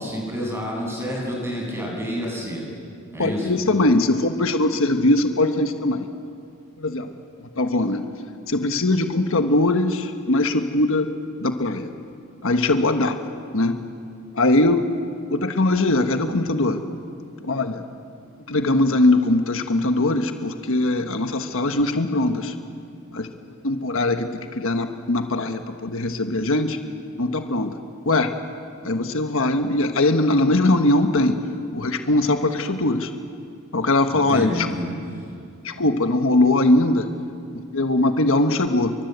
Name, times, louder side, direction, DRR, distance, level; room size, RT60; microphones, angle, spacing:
voice 1, 0.0-2.6 3.1-3.5 34.1-35.2, equal, 10° right, -1 dB, 7.8 m, -29 dB
voice 2, 3.2-6.1 6.8-7.1 7.6-8.0 8.5-11.1 11.4-11.9 12.4-13.2 13.5-13.8 14.3-14.8 15.3-16.8 17.4-17.8 18.5-22.6 23.1-23.3 23.6-26.8 27.2-27.8 28.0-28.3 28.8-31.4 31.7-33.1 33.7-34.7 35.6-37.1 37.7-38.9, left 2 dB, 70° left, 6 dB, 1.4 m, -21 dB
29.0 x 24.0 x 8.1 m, 2.4 s
head